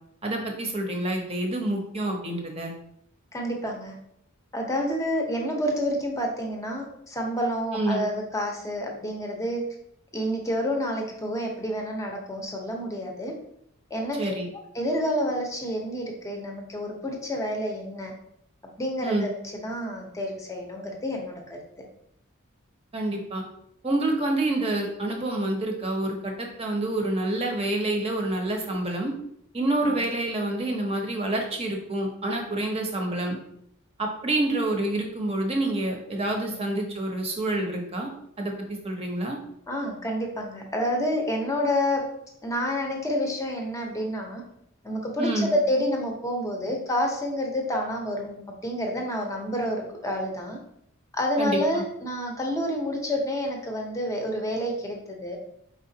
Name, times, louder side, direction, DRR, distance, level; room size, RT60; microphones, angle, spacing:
voice 1, 0.2-2.7 7.7-8.1 14.2-14.5 19.0-19.3 22.9-23.4 23.8-29.1 29.5-33.4 34.0-38.1 38.4-38.5 38.8-39.4 45.2-45.5 51.4-51.8, right 1 dB, 30° right, 2 dB, 0.8 m, -27 dB
voice 2, 3.3-3.9 4.5-9.6 10.1-13.3 13.9-14.3 14.7-18.1 18.8-19.3 19.6-21.6 29.9-30.0 36.5-36.6 39.7-42.0 42.4-44.4 44.8-50.6 51.1-55.4, equal, 15° left, 1 dB, 0.8 m, -29 dB
4.9 x 3.7 x 2.7 m, 0.73 s
head